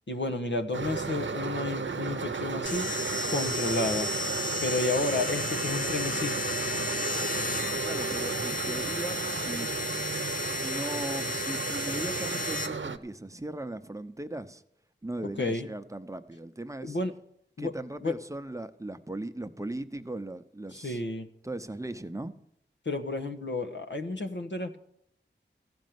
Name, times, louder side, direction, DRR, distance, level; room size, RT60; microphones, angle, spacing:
voice 1, 0.1-2.9 3.3-4.1 4.6-6.4 15.4-15.7 16.8-17.1 17.6-17.7 18.0-18.1 20.7-21.3 22.8-24.8, left 2 dB, 75° left, 6 dB, 1.2 m, -31 dB
sound 1, 0.7-13.0, right 5 dB, 85° right, 0.7 m, -34 dB
sound 2, 2.7-12.7, left 2 dB, 45° left, 1.2 m, -33 dB
voice 2, 7.8-9.7 10.6-14.6 15.0-17.0 17.6-21.0 21.4-22.3, right 2 dB, 15° right, 9 dB, 0.8 m, -38 dB
15.0 x 5.3 x 9.3 m, 0.74 s
wide cardioid pair, 50°, 19 cm